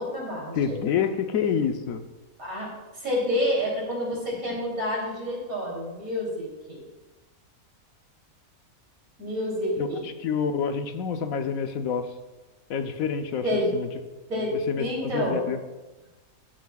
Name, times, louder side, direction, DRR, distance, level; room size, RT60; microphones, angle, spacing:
voice 1, 0.0-0.8 2.4-6.8 9.2-10.1 13.4-13.7 14.3-15.5, left 1 dB, 75° right, -3 dB, 3.7 m, -29 dB
voice 2, 0.6-2.0 9.8-12.1 12.7-13.4 13.7-13.9 14.7-15.6, left 6 dB, 75° left, 8 dB, 1.2 m, -27 dB
13.5 x 9.4 x 2.3 m, 1.1 s
omnidirectional pair, 1.5 m